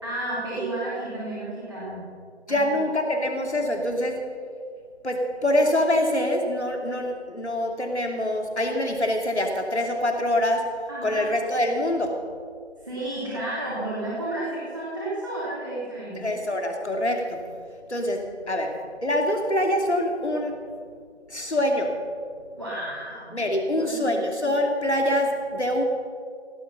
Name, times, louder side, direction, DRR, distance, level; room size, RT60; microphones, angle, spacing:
voice 1, 0.0-2.0 2.5-2.6 10.9-11.3 12.8-16.4 22.5-23.4 23.6-24.1, right 1 dB, 25° right, -9 dB, 3.1 m, -32 dB
voice 2, 2.5-4.3 5.0-10.6 11.0-12.2 16.1-17.4 17.9-20.5 21.3-22.0 23.3-25.8, left 1 dB, 70° left, 2 dB, 2.8 m, -25 dB
17.5 x 11.5 x 5.7 m, 2.1 s
figure-of-eight pair, 175°, 35 cm